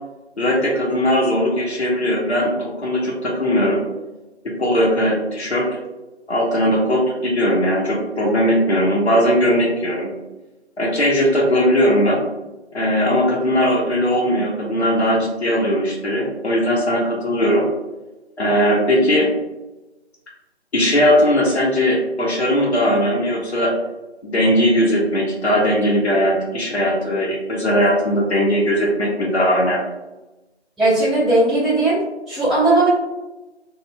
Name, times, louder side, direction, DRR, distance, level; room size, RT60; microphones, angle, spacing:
voice 1, 0.4-3.8 4.4-5.7 6.3-10.1 10.8-12.2 12.7-17.6 18.4-19.3 20.7-23.7 24.2-29.8, equal, 70° left, -3 dB, 0.8 m, -19 dB
voice 2, 30.8-32.9, right 2 dB, ahead, -13 dB, 0.4 m, -17 dB
3.0 x 2.4 x 2.2 m, 1.1 s
figure-of-eight pair, 170°, 34 cm